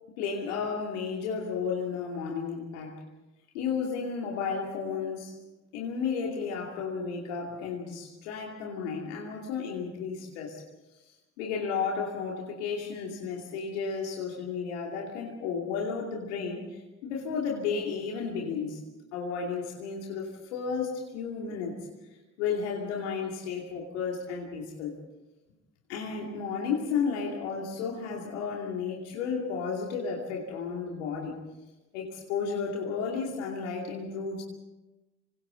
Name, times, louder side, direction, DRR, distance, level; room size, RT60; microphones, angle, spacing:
voice 1, 0.2-3.0 3.5-5.4 5.7-10.6 11.4-18.8 19.1-21.8 22.4-25.0 25.9-31.4 31.9-34.4, left 5 dB, 85° left, -1 dB, 2.7 m, -33 dB
27.0 x 26.0 x 4.0 m, 1.0 s
hypercardioid pair, 40°, 34 cm